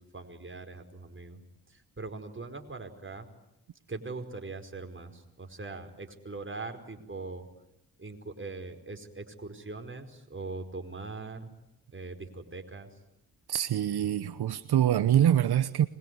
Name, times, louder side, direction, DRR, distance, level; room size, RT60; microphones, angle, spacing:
voice 1, 0.0-1.4 1.7-3.3 3.9-7.5 8.0-11.5 11.9-12.9, right 3 dB, 30° right, 4 dB, 5.0 m, -41 dB
voice 2, 13.5-15.9, right 10 dB, 75° right, 13 dB, 1.0 m, -25 dB
26.0 x 22.0 x 9.6 m, 0.86 s
supercardioid pair, 45°, 39 cm